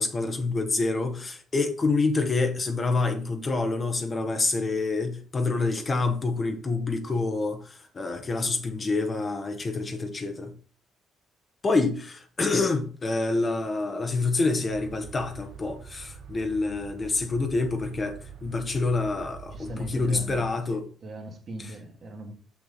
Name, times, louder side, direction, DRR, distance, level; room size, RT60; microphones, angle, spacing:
voice 1, 0.0-10.5 11.6-20.9, left 3 dB, 30° left, 1.1 m, -27 dB
sound 1, 14.7-20.5, right 6 dB, 65° right, 0.8 m, -45 dB
voice 2, 19.5-22.3, right 1 dB, 40° right, 1.7 m, -40 dB
6.0 x 6.0 x 4.0 m
cardioid pair, 115°, 0 cm